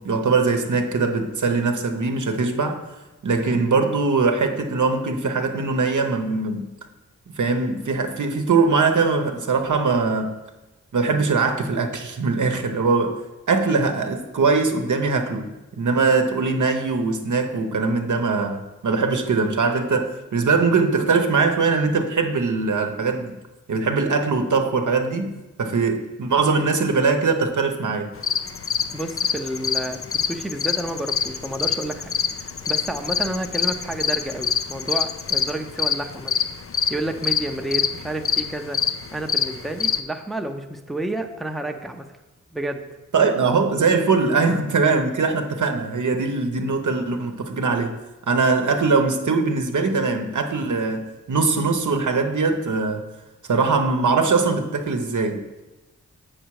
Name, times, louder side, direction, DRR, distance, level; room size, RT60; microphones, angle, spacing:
voice 1, 0.0-2.9 3.2-6.7 7.4-10.4 10.9-13.2 13.5-23.4 23.7-28.1 43.1-48.0 48.3-53.1 53.5-55.5, right 4 dB, 70° right, 0.9 m, -21 dB
sound 1, 28.2-40.0, left 7 dB, 45° left, 0.5 m, -26 dB
voice 2, 28.9-32.1 32.4-36.4 36.9-38.8 39.1-42.1 42.5-42.8, right 1 dB, ahead, 0.7 m, -30 dB
7.2 x 6.4 x 4.7 m
cardioid pair, 55°, 31 cm